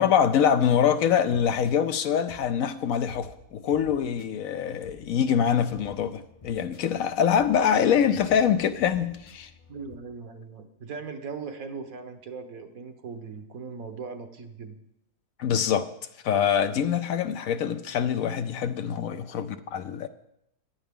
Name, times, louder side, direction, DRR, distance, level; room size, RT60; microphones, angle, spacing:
voice 1, 0.0-9.5 15.4-15.9 16.2-20.1, left 8 dB, 70° left, 1.0 m, -24 dB
sound 1, 1.3-10.0, left 4 dB, 40° left, 0.5 m, -52 dB
voice 2, 9.7-14.8, right 5 dB, 65° right, 1.5 m, -39 dB
14.5 x 11.0 x 3.7 m
omnidirectional pair, 1.6 m